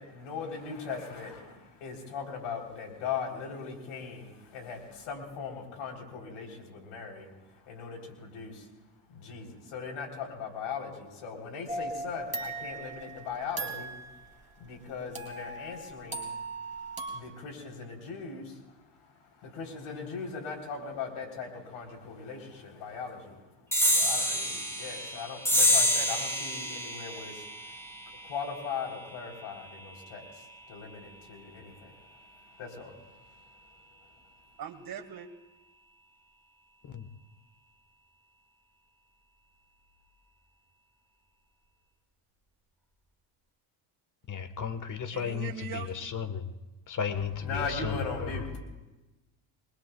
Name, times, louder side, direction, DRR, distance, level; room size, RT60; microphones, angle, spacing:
voice 1, 0.0-8.7 9.1-33.4 47.2-48.6, left 5 dB, 75° left, 2 dB, 3.8 m, -40 dB
sound 1, 11.7-14.2 15.2-17.2, right 2 dB, 15° right, 3.0 m, -38 dB
sound 2, 23.7-30.6, left 1 dB, 5° left, 2.0 m, -29 dB
voice 2, 34.6-35.3 45.1-46.1, right 8 dB, 45° right, 3 dB, 1.8 m, -41 dB
voice 3, 44.3-45.5 45.9-46.4 46.9-47.9, left 7 dB, 35° left, 9 dB, 1.4 m, -34 dB
29.0 x 21.0 x 2.3 m, 1.1 s
cardioid pair, 95°, 50 cm